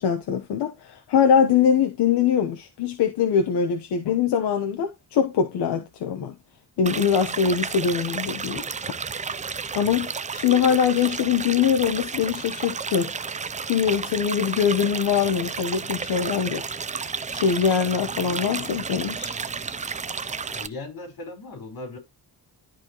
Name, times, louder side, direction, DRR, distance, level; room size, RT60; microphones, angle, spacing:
voice 1, 0.0-6.3 6.8-8.6 9.7-13.1 13.7-16.6 17.3-19.3, left 7 dB, 90° left, 1.1 m, -23 dB
sound 1, 6.9-20.7, right 5 dB, 20° right, 0.4 m, -32 dB
voice 2, 18.2-18.7 20.5-22.0, left 2 dB, 65° left, 4.6 m, -38 dB
12.5 x 4.4 x 3.0 m
cardioid pair, 115°, 38 cm